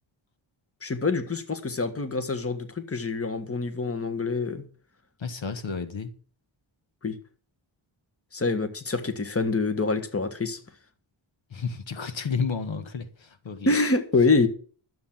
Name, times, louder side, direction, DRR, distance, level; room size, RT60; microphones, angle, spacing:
voice 1, 0.8-4.6 7.0-7.2 8.3-10.6 13.6-14.5, left 3 dB, 30° left, 1.5 m, -26 dB
voice 2, 5.2-6.1 11.5-13.7, left 5 dB, 70° left, 1.5 m, -31 dB
12.5 x 7.8 x 7.3 m
wide cardioid pair, 120°, 48 cm